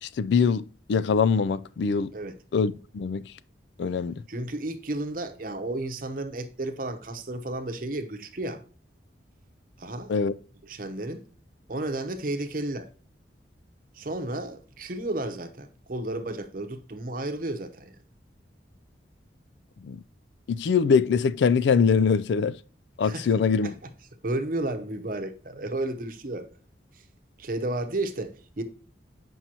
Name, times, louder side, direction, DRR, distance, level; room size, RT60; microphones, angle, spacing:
voice 1, 0.0-2.1 2.5-3.3 3.8-4.2 10.1-10.3 19.8-20.0 20.5-22.6 23.0-23.7, left 5 dB, 70° left, 0.3 m, -23 dB
voice 2, 4.3-8.6 9.8-10.1 10.6-11.3 11.7-12.9 13.9-17.9 23.0-23.3 23.6-23.7 24.2-26.5 27.4-28.6, right 2 dB, 45° right, 0.8 m, -32 dB
7.5 x 5.5 x 2.8 m
head